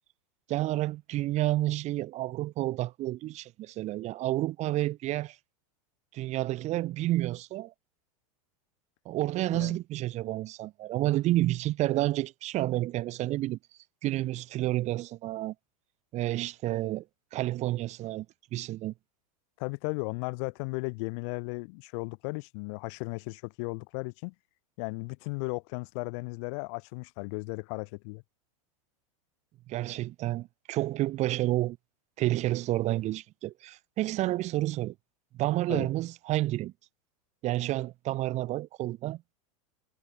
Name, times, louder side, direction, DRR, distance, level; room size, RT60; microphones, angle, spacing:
voice 1, 0.5-5.4 6.1-7.7 9.0-13.6 14.0-15.5 16.1-17.0 17.3-18.3 18.5-18.9 29.7-31.8 32.2-34.9 35.4-36.7 37.4-39.3, right 16 dB, 40° right, 3.0 m, -30 dB
voice 2, 19.6-24.3 24.8-28.2 35.7-35.9, left 33 dB, 55° left, 1.9 m, -35 dB
supercardioid pair, 125°, 18 cm